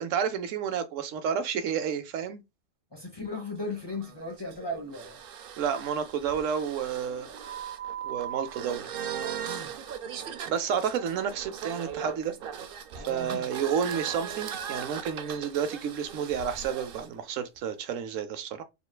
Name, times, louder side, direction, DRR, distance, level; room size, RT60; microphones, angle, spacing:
voice 1, 0.0-2.4 5.6-7.3 8.0-8.9 10.5-12.3 13.0-18.6, right 7 dB, 80° right, 1.0 m, -30 dB
voice 2, 2.9-5.2 9.5-9.7 12.9-13.5, left 2 dB, 25° left, 0.7 m, -36 dB
sound 1, 3.3-17.1, right 8 dB, 60° right, 0.6 m, -39 dB
4.3 x 3.1 x 2.2 m
omnidirectional pair, 1.3 m